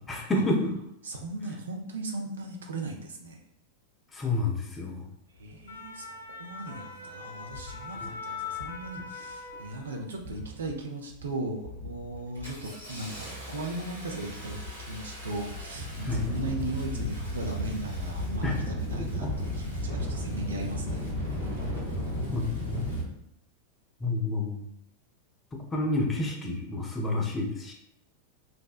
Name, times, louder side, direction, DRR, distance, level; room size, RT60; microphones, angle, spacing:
voice 1, 0.1-0.7 4.1-5.0 8.0-8.1 16.0-16.3 18.4-18.5 22.3-22.8 24.0-24.6 25.7-27.7, left 2 dB, 15° left, 0 dB, 0.5 m, -29 dB
voice 2, 1.0-3.4 5.4-6.1 6.4-21.0, right 2 dB, 70° right, 2 dB, 0.4 m, -37 dB
sound 1, 5.4-10.2 10.5-10.8, left 5 dB, 70° left, 0.4 m, -41 dB
Engine starting, 6.7-6.8 7.5-7.8 8.5-8.8 9.2-9.7 10.2-10.7 11.1-11.3 11.6-23.0, left 1 dB, 85° right, 0.9 m, -35 dB
2.5 x 2.1 x 2.3 m, 0.74 s
figure-of-eight pair, 90°, 0 cm